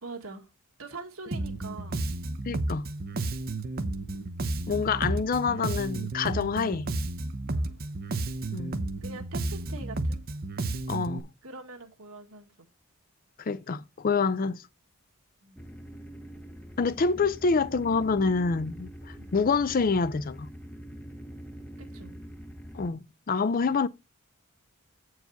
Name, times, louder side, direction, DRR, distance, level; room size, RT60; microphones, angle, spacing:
voice 1, 0.0-0.4 0.8-2.0 7.5-7.8 9.0-10.2 11.4-12.7 15.4-15.6 17.1-17.3 19.1-19.4 21.9-22.2, right 3 dB, 70° right, 1.6 m, -43 dB
Bass guitar, 1.3-11.2, right 2 dB, 45° right, 0.7 m, -32 dB
voice 2, 2.4-2.9 4.7-6.9 8.5-8.8 10.9-11.3 13.4-14.6 16.8-20.5 22.7-23.9, left 4 dB, 40° left, 0.4 m, -27 dB
sound 1, 15.5-22.9, equal, 5° left, 0.7 m, -44 dB
8.1 x 4.8 x 5.7 m
head